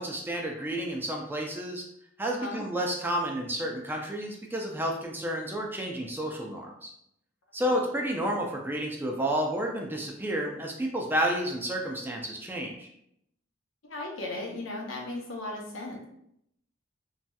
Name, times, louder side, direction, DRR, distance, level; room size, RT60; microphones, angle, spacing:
voice 1, 0.0-1.8 2.2-6.9 7.5-12.9, right 1 dB, 10° right, 0 dB, 0.4 m, -31 dB
voice 2, 13.8-16.0, left 2 dB, 80° left, 0 dB, 0.8 m, -36 dB
3.1 x 2.8 x 2.3 m, 0.74 s
head